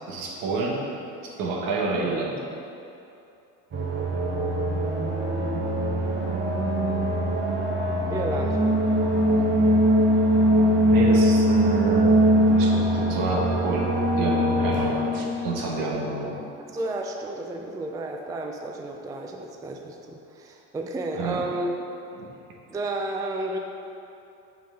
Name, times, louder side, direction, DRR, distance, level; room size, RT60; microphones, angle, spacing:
voice 1, 0.1-0.8 1.2-2.3 10.9-13.9 14.2-16.4 21.1-21.4 22.2-22.3, right 3 dB, 65° right, -1 dB, 1.2 m, -29 dB
sound 1, 3.7-15.7, equal, 30° right, 1.1 m, -22 dB
voice 2, 8.1-8.6 16.6-21.7 22.7-23.6, right 2 dB, 10° right, 2 dB, 0.4 m, -32 dB
5.6 x 5.1 x 3.7 m, 2.7 s
supercardioid pair, 85°, 36 cm